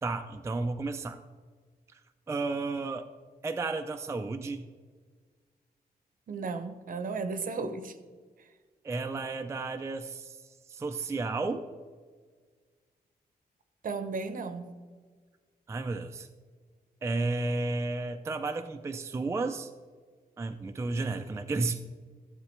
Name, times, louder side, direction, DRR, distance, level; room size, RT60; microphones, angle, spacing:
voice 1, 0.0-1.2 2.3-3.0 3.4-4.7 8.8-10.4 10.7-11.6 15.7-16.3 17.0-19.7 20.4-21.8, right 3 dB, 15° right, 7 dB, 0.3 m, -32 dB
voice 2, 6.3-8.0 13.8-14.7, right 4 dB, 60° right, 9 dB, 0.7 m, -34 dB
12.5 x 7.5 x 3.1 m, 1.5 s
wide cardioid pair, 160°, 16 cm